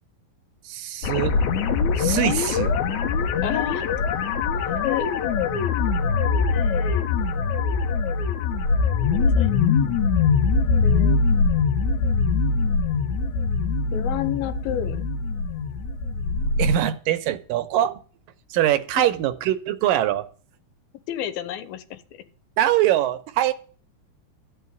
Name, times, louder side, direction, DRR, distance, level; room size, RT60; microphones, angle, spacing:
voice 1, 0.6-1.4 2.0-2.7 16.6-18.0 18.5-20.3 22.6-23.5, right 12 dB, 75° right, 12 dB, 2.4 m, -23 dB
sound 1, 1.0-16.8, left 5 dB, 70° left, 2.0 m, -22 dB
voice 2, 3.4-3.9 4.8-5.1 6.5-7.1 9.1-9.6 10.8-11.2 13.9-15.0 19.0-19.1 21.1-22.2, left 11 dB, 90° left, 12 dB, 2.9 m, -31 dB
13.5 x 5.7 x 9.5 m, 0.41 s
omnidirectional pair, 4.2 m